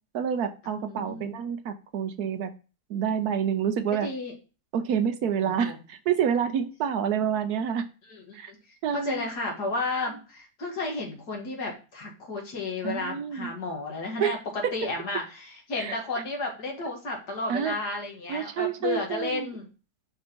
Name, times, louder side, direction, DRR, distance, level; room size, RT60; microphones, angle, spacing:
voice 1, 0.1-2.5 2.9-4.1 4.7-7.8 8.3-8.5 8.8-9.2 12.8-13.5 14.2-14.4 15.8-16.0 17.5-17.7 18.3-19.5, right 8 dB, 70° right, 9 dB, 1.1 m, -28 dB
voice 2, 0.9-1.4 3.9-4.3 5.4-5.8 8.1-8.6 8.9-19.7, left 3 dB, 70° left, 1 dB, 2.3 m, -33 dB
5.2 x 4.2 x 5.0 m, 0.33 s
omnidirectional pair, 1.8 m